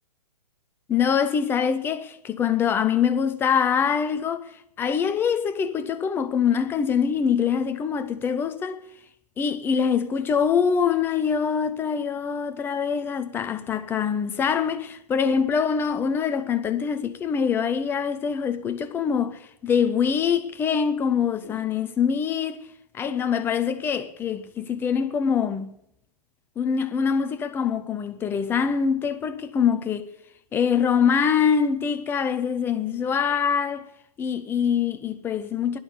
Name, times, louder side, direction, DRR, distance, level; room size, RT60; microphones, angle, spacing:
voice 1, 0.9-4.5 4.8-8.8 9.4-22.7 22.9-25.8 26.6-30.1 30.5-33.9 34.2-35.8, left 7 dB, 10° left, 0.7 m, -24 dB
16.0 x 11.5 x 7.0 m
figure-of-eight pair, 125°, 21 cm